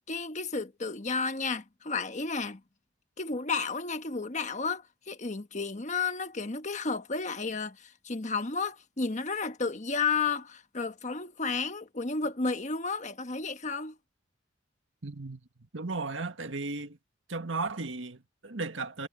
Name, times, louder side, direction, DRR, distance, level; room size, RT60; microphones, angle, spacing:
voice 1, 0.1-2.6 3.2-13.9, left 4 dB, 40° left, 1.3 m, -32 dB
voice 2, 15.0-15.4 15.7-17.0 17.3-19.1, right 3 dB, 90° right, 1.7 m, -35 dB
head